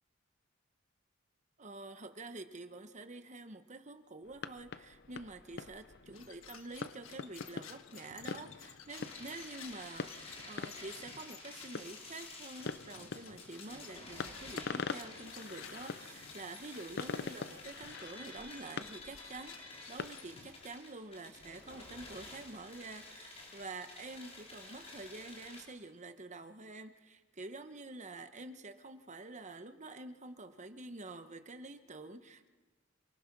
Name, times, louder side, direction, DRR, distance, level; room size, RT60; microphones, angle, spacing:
voice 1, 1.6-32.5, right 2 dB, 35° right, 9 dB, 1.2 m, -48 dB
sound 1, 4.2-20.7, left 5 dB, 55° left, 0.6 m, -45 dB
sound 2, 6.1-20.7, left 8 dB, 85° left, 1.5 m, -55 dB
sound 3, 8.9-25.6, left 2 dB, 30° left, 5.4 m, -51 dB
27.0 x 20.5 x 6.1 m, 1.3 s
head